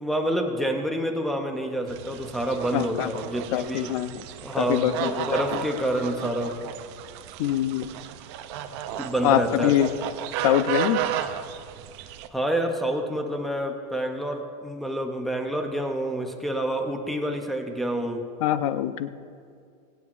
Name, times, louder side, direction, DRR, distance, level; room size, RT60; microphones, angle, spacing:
voice 1, 0.0-3.9 4.4-6.6 9.0-9.7 12.3-18.2, right 1 dB, ahead, 2 dB, 0.5 m, -28 dB
sound 1, 1.9-12.3, right 11 dB, 45° right, 0.5 m, -34 dB
voice 2, 2.7-3.1 3.5-4.2 4.6-5.4 7.4-7.9 9.2-9.9 10.4-11.0 18.4-19.1, left 12 dB, 60° left, 12 dB, 0.6 m, -24 dB
22.5 x 9.3 x 2.5 m, 2.3 s
supercardioid pair, 175°, 20 cm